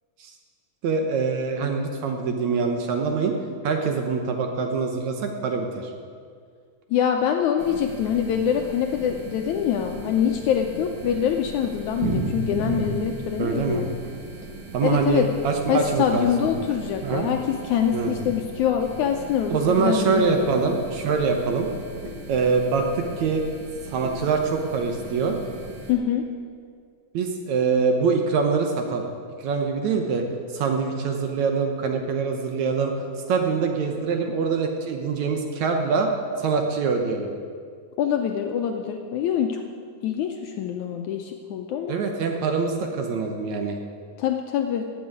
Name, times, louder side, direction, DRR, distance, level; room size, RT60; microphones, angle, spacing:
voice 1, 0.8-3.4 3.6-5.9 13.4-13.9 14.7-16.5 17.0-17.3 17.9-18.3 19.5-21.7 22.3-23.4 23.9-25.4 27.1-29.1 29.4-30.2 30.5-36.1 36.4-37.3 41.9-43.8, right 5 dB, 65° right, 3 dB, 2.0 m, -24 dB
voice 2, 6.9-13.9 14.8-15.3 15.7-20.5 25.9-26.2 38.0-39.6 40.0-42.0 44.2-44.9, left 8 dB, 75° left, 4 dB, 1.8 m, -24 dB
sound 1, 7.6-25.9, right 2 dB, 45° right, 1.7 m, -37 dB
16.0 x 6.2 x 9.6 m, 2.1 s
omnidirectional pair, 4.0 m